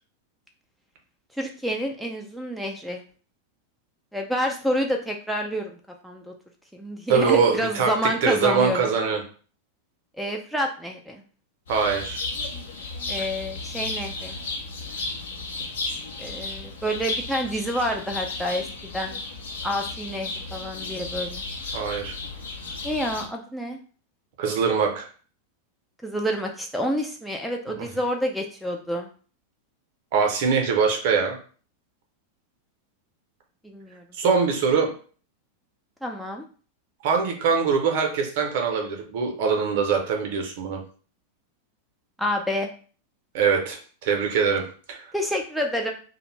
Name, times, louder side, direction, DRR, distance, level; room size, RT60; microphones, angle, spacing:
voice 1, 1.4-3.0 4.1-5.7 6.0-6.3 6.7-8.9 10.2-11.2 13.1-14.4 16.2-18.6 18.9-19.2 19.6-21.4 22.8-23.8 26.0-29.1 33.6-34.0 36.0-36.4 42.2-42.7 45.1-45.9, equal, ahead, 2 dB, 0.3 m, -28 dB
voice 2, 7.1-9.2 11.7-12.2 21.7-22.2 24.4-25.1 30.1-31.4 34.2-34.9 37.0-40.8 43.3-45.1, right 5 dB, 50° right, 2 dB, 0.6 m, -23 dB
sound 1, 11.7-23.3, left 3 dB, 65° left, 0.6 m, -34 dB
2.4 x 2.1 x 3.0 m, 0.41 s
figure-of-eight pair, 90°, 0 cm